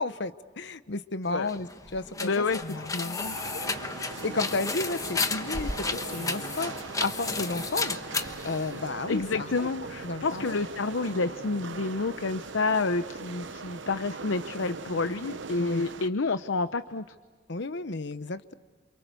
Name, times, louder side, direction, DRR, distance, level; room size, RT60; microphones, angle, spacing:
voice 1, 0.0-2.8 4.2-6.7 7.0-8.0 8.4-9.7 10.0-10.6 15.6-15.8 17.5-18.5, left 3 dB, 65° left, 12 dB, 1.0 m, -32 dB
sound 1, 1.4-9.3, left 3 dB, 20° left, 1.1 m, -33 dB
voice 2, 2.2-3.4 9.1-17.0, left 3 dB, 90° left, 11 dB, 0.8 m, -29 dB
sound 2, 3.2-16.1, right 4 dB, 70° right, 0.9 m, -41 dB
sound 3, 4.1-13.7, right 2 dB, 55° right, 5.4 m, -50 dB
29.0 x 28.0 x 6.8 m, 1.5 s
head